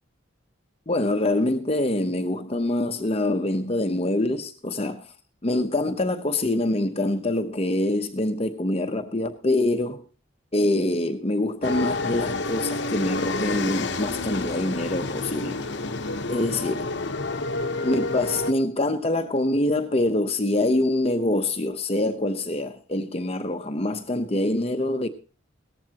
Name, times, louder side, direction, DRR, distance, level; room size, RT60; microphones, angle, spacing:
voice 1, 0.9-5.1 5.4-10.0 10.5-15.6 16.3-17.0 17.8-25.1, left 1 dB, 30° left, 0.8 m, -25 dB
sound 1, 11.6-18.5, left 2 dB, 60° left, 0.9 m, -29 dB
17.5 x 14.0 x 2.9 m
head